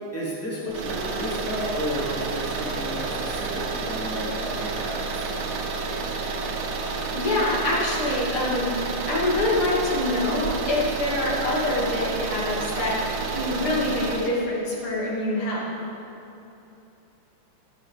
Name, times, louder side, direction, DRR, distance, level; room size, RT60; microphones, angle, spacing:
voice 1, 0.1-5.3, equal, 5° left, -7 dB, 2.7 m, -32 dB
sound 1, 0.7-14.4, right 4 dB, 60° right, 1.4 m, -30 dB
voice 2, 7.1-15.7, left 1 dB, 80° left, -5 dB, 3.3 m, -25 dB
17.0 x 10.5 x 5.0 m, 2.9 s
omnidirectional pair, 2.4 m